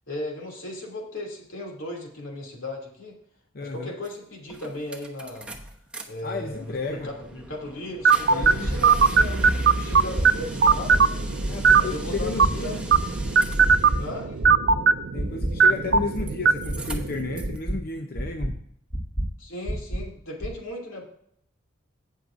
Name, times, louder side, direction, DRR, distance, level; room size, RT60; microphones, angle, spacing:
voice 1, 0.1-3.2 3.6-5.6 6.1-11.2 11.8-12.9 14.0-14.4 19.4-21.0, left 1 dB, 75° left, 0 dB, 2.6 m, -36 dB
voice 2, 3.5-3.9 6.2-7.1 8.3-8.7 11.5-12.9 15.1-18.7, left 3 dB, 50° left, 5 dB, 0.6 m, -33 dB
sound 1, 4.1-4.2 4.5-6.0 6.4-14.1 15.6-16.3 16.6-17.6, right 1 dB, 5° right, 0.9 m, -35 dB
sound 2, 8.0-17.6, right 5 dB, 55° right, 0.4 m, -21 dB
sound 3, 8.4-8.7 9.2-9.5 9.9-10.2 10.7-11.0 11.4-11.8 12.2-12.5 12.9-13.3 13.7-14.0 14.4-14.8 15.2-15.5 15.9-16.3 16.7-17.0 17.4-17.8 18.2-18.5 18.9-19.2 19.7-20.0 20.4-20.5, right 1 dB, 25° left, 2.0 m, -28 dB
17.5 x 6.4 x 2.5 m, 0.69 s
head